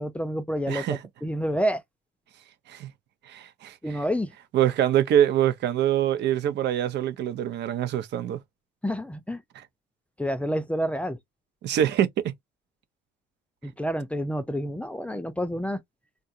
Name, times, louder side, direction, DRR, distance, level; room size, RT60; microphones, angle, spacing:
voice 1, 0.0-1.8 3.8-4.3 8.8-9.4 10.2-11.2 13.6-15.8, equal, 5° left, 0.4 m, -28 dB
voice 2, 0.7-1.0 2.7-2.9 3.3-4.0 4.5-8.4 11.6-12.1, right 11 dB, 65° right, 0.6 m, -24 dB
3.8 x 2.3 x 2.6 m
cardioid pair, 105°, 19 cm